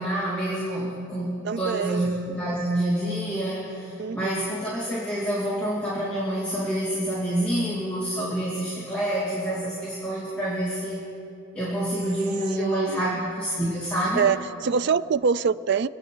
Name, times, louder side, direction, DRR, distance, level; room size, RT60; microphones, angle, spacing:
voice 1, 0.0-11.0 11.5-14.3, right 1 dB, 5° left, -9 dB, 2.4 m, -27 dB
voice 2, 1.4-2.1 4.0-4.6 12.6-13.2 14.2-15.9, right 6 dB, 55° right, 16 dB, 0.3 m, -25 dB
27.0 x 9.2 x 4.6 m, 2.9 s
head